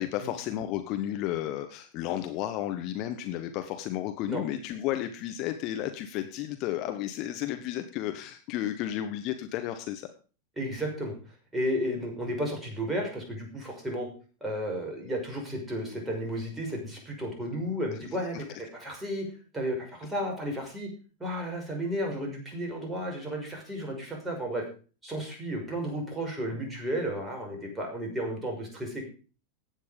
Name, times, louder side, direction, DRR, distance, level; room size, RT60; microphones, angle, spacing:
voice 1, 0.0-10.1 18.3-18.4, left 12 dB, 40° left, 7 dB, 1.2 m, -33 dB
voice 2, 10.6-11.1 11.5-14.1 14.4-19.3 19.5-20.9 21.2-24.6 25.0-29.0, equal, 10° right, 0 dB, 5.9 m, -33 dB
15.0 x 9.2 x 5.2 m, 0.37 s
figure-of-eight pair, 90°, 0 cm